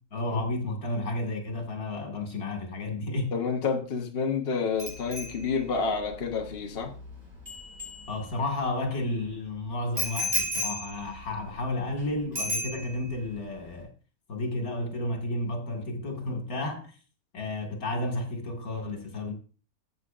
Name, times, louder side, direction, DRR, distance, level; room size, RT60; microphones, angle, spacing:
voice 1, 0.1-3.3 8.1-13.9 14.3-17.0 17.3-19.3, left 2 dB, 80° left, 2.4 m, -32 dB
voice 2, 3.3-6.9, left 5 dB, 45° left, 1.2 m, -29 dB
Bicycle bell, 4.8-8.6 10.0-12.0 12.3-13.2 13.5-13.8, left 1 dB, 25° right, 4.0 m, -35 dB
14.0 x 7.9 x 2.5 m
omnidirectional pair, 1.5 m